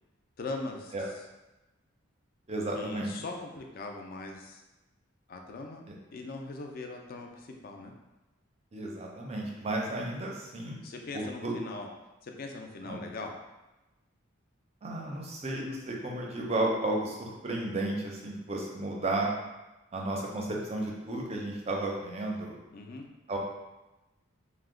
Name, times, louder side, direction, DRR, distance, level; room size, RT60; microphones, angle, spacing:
voice 1, 0.4-1.1 2.7-4.6 5.3-5.8 6.1-7.9 10.8-11.9 12.2-13.3 22.7-23.0, left 3 dB, 45° left, 2 dB, 0.3 m, -40 dB
voice 2, 2.5-3.1 8.7-10.8 11.1-11.6 12.9-13.0 14.8-19.3 19.9-22.6 23.3-23.4, right 2 dB, 30° right, -1 dB, 0.4 m, -33 dB
2.8 x 2.0 x 3.6 m, 1.0 s
head